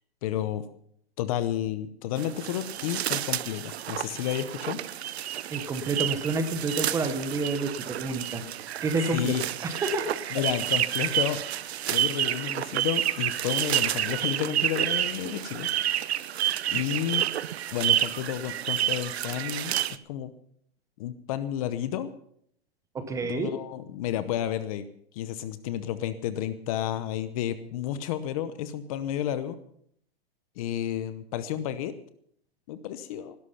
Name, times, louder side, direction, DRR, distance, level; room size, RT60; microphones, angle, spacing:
voice 1, 0.2-0.7 1.2-4.8 9.1-9.4 10.3-15.7 16.7-17.2 17.7-20.3 21.0-22.1 23.2-24.9 25.1-29.6 30.6-31.9 32.7-33.4, left 11 dB, 35° left, 13 dB, 0.9 m, -31 dB
sound 1, 2.2-20.0, right 12 dB, 75° right, 0.7 m, -29 dB
voice 2, 5.5-8.4 8.8-9.3 9.6-10.4 22.9-23.5, right 3 dB, 10° right, 9 dB, 0.9 m, -29 dB
17.0 x 12.0 x 5.7 m, 0.66 s
hypercardioid pair, 160°, 32 cm